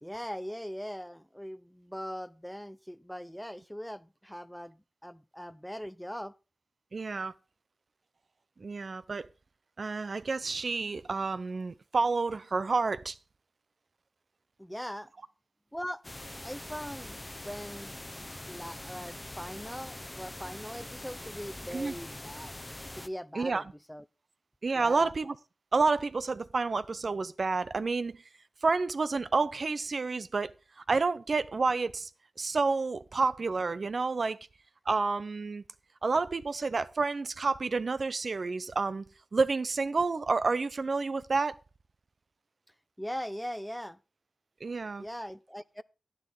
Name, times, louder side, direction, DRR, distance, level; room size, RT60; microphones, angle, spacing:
voice 1, 0.0-6.3 14.6-15.1 15.7-16.0 16.4-17.2 17.4-18.0 18.5-22.5 23.0-24.0 24.8-25.1 43.0-44.0 45.0-45.8, equal, 5° left, 0.6 m, -40 dB
voice 2, 6.9-7.3 8.6-9.3 9.8-13.2 21.7-21.9 23.3-23.6 24.6-25.3 25.7-28.2 28.6-32.1 32.4-34.5 34.9-35.6 36.0-39.0 39.3-41.6 44.6-45.0, right 4 dB, 60° right, 0.7 m, -29 dB
sound 1, 16.0-23.1, left 1 dB, 20° left, 0.9 m, -43 dB
10.5 x 10.0 x 3.9 m
cardioid pair, 55°, 0 cm